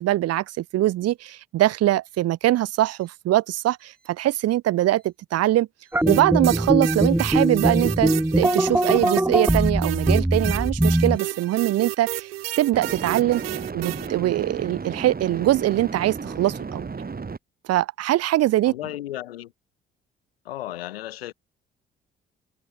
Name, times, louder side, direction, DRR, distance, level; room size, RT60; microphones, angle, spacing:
voice 1, 0.0-5.7 6.1-12.3 12.6-16.9 17.7-18.7, right 14 dB, 55° right, 1.1 m, -22 dB
sound 1, 5.9-11.2, right 1 dB, 5° right, 2.5 m, -21 dB
sound 2, 6.1-14.1, right 17 dB, 75° right, 3.9 m, -32 dB
sound 3, 8.0-8.1 12.7-17.4, right 4 dB, 30° right, 4.6 m, -34 dB
voice 2, 18.6-19.5 20.4-21.3, left 14 dB, 80° left, 7.1 m, -34 dB
figure-of-eight pair, 45°, 30 cm